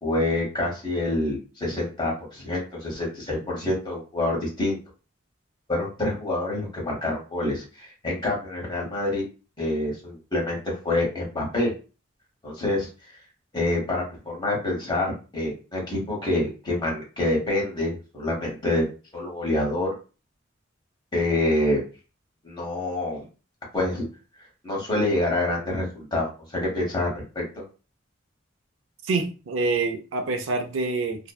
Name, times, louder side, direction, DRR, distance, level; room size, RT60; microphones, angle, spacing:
voice 1, 0.0-4.8 5.7-9.2 9.6-11.7 12.4-12.9 13.5-19.9 21.1-21.8 22.4-23.2 23.7-24.1 24.6-27.1 27.3-27.6, left 1 dB, 25° left, 1.0 m, -27 dB
voice 2, 29.0-31.3, right 3 dB, 90° right, 0.5 m, -26 dB
2.6 x 2.1 x 2.3 m
head